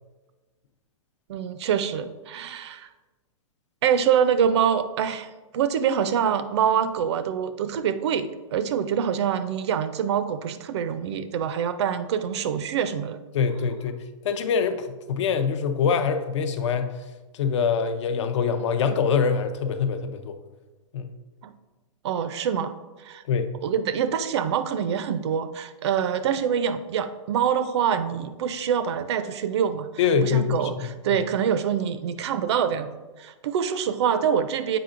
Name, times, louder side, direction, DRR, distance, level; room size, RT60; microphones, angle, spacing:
voice 1, 1.3-2.9 3.8-13.2 21.4-21.5 22.0-22.7 23.0-23.2 23.6-29.9 30.2-32.9 33.2-34.8, right 8 dB, 55° right, 12 dB, 0.4 m, -25 dB
voice 2, 13.3-14.0 14.2-17.0 17.3-20.4 20.9-21.1 23.3-23.5 30.0-30.7 31.1-31.2, left 6 dB, 60° left, 8 dB, 0.5 m, -24 dB
7.6 x 5.0 x 2.5 m, 1.2 s
hypercardioid pair, 165°, 17 cm